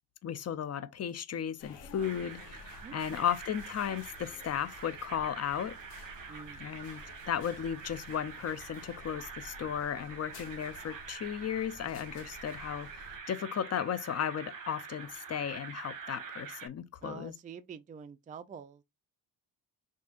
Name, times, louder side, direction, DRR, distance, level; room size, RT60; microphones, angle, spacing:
voice 1, 0.2-5.8 6.6-7.0 7.3-17.3, left 9 dB, 35° left, 0.5 m, -35 dB
sound 1, 1.6-13.2, left 3 dB, 80° left, 1.4 m, -52 dB
sound 2, 2.0-16.7, right 5 dB, 45° right, 1.4 m, -46 dB
voice 2, 2.8-3.3 6.3-6.6 17.0-18.8, right 7 dB, 20° right, 0.4 m, -47 dB
6.1 x 2.7 x 2.4 m
cardioid pair, 100°, 42 cm